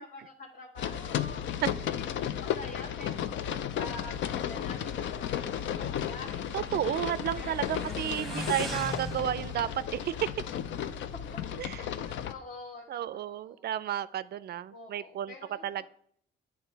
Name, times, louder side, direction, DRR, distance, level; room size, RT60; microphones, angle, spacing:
voice 1, 0.0-2.1 2.4-6.4 6.8-8.0 8.3-8.7 10.8-11.0 11.3-11.8 12.1-13.7 14.7-15.9, left 3 dB, 50° left, 1.1 m, -47 dB
sound 1, 0.8-12.3, left 9 dB, 70° left, 0.5 m, -34 dB
Motorcycle, 3.1-11.4, right 1 dB, ahead, 0.9 m, -44 dB
voice 2, 6.5-10.1 11.6-11.8 12.9-15.3 15.6-15.9, right 11 dB, 55° right, 0.4 m, -32 dB
9.5 x 3.2 x 4.5 m
cardioid pair, 90°, 20 cm